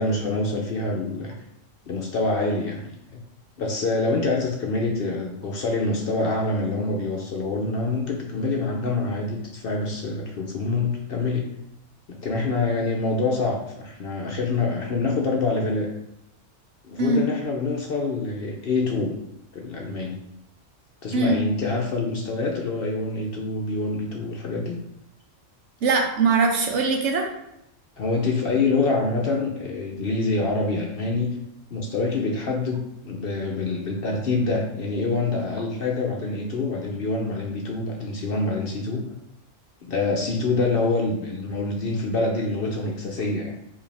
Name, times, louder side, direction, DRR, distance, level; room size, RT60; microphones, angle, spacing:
voice 1, 0.0-1.3 1.9-2.9 3.6-11.5 12.1-15.9 16.8-19.2 19.5-20.2 21.0-24.8 28.0-31.3 31.7-39.0 39.8-43.5, left 3 dB, 55° left, 0 dB, 0.7 m, -26 dB
voice 2, 25.8-27.3, right 4 dB, 70° right, 2 dB, 1.0 m, -21 dB
4.8 x 2.6 x 3.4 m, 0.81 s
omnidirectional pair, 1.3 m